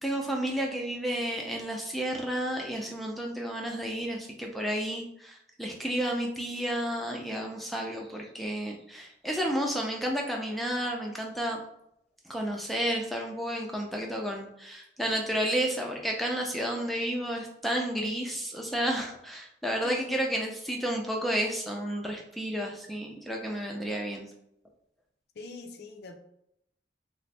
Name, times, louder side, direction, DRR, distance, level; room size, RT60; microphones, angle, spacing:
voice 1, 0.0-11.6 12.3-24.3, right 1 dB, ahead, 0 dB, 0.4 m, -31 dB
voice 2, 19.8-20.2 25.4-26.1, left 3 dB, 60° left, 6 dB, 0.4 m, -43 dB
3.1 x 2.0 x 4.1 m, 0.76 s
head